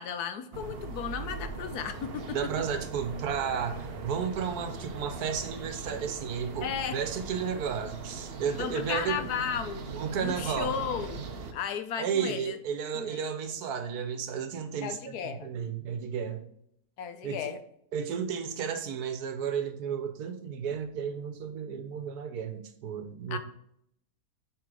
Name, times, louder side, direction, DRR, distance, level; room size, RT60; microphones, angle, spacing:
voice 1, 0.0-2.4 6.6-7.0 8.6-9.8 10.2-11.2 11.5-12.6 12.9-13.2 14.8-15.5 17.0-17.6 23.3-23.4, left 8 dB, 80° left, 9 dB, 1.3 m, -34 dB
sound 1, 0.5-11.5, right 4 dB, 45° right, 0.9 m, -40 dB
voice 2, 2.3-9.3 9.9-10.7 12.0-16.4 17.2-17.5 17.9-23.4, right 7 dB, 80° right, 8 dB, 1.4 m, -33 dB
8.8 x 3.8 x 4.8 m, 0.73 s
omnidirectional pair, 1.6 m